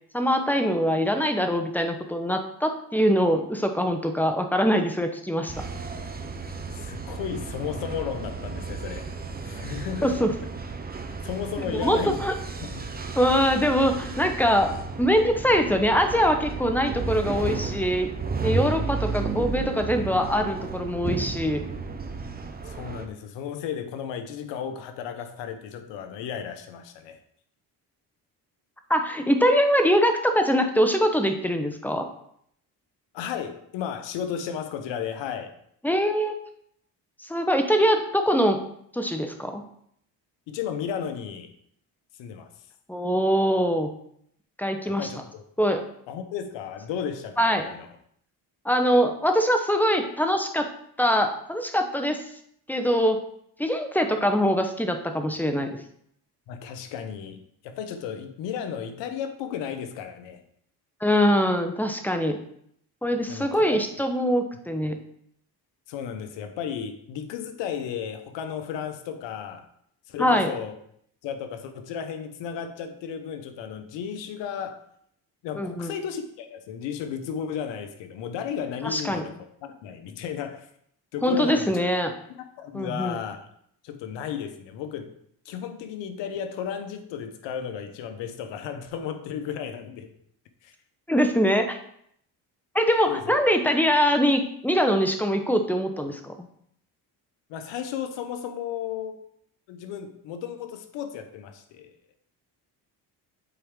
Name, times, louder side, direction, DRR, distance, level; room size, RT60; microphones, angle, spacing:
voice 1, 0.1-5.5 10.0-10.3 11.7-12.3 13.2-14.7 15.0-18.1 18.4-21.6 28.9-32.1 35.8-36.4 37.3-38.6 38.9-39.6 42.9-43.9 44.6-45.1 45.6-45.8 47.4-47.7 48.6-50.7 51.0-52.2 52.7-53.2 53.6-55.7 61.0-62.4 63.0-65.0 70.2-70.5 75.5-75.9 78.8-79.2 81.2-82.1 82.7-83.2 91.1-91.8 92.7-96.5, equal, 5° left, 6 dB, 1.0 m, -23 dB
sound 1, 5.5-23.1, right 4 dB, 20° right, 0.8 m, -33 dB
voice 2, 6.7-9.1 9.4-10.2 11.1-12.2 12.6-12.9 22.6-27.2 33.1-35.5 40.5-41.5 42.2-42.5 44.9-45.4 46.1-47.9 56.5-60.4 63.3-63.8 65.9-69.6 70.1-70.8 71.2-74.8 75.4-80.7 81.1-81.8 82.4-83.4 83.8-85.1 85.4-90.1 90.6-90.7 93.1-93.3 97.5-99.2 99.7-102.0, left 8 dB, 85° left, 8 dB, 1.0 m, -34 dB
8.3 x 4.4 x 3.7 m, 0.69 s
supercardioid pair, 80°, 42 cm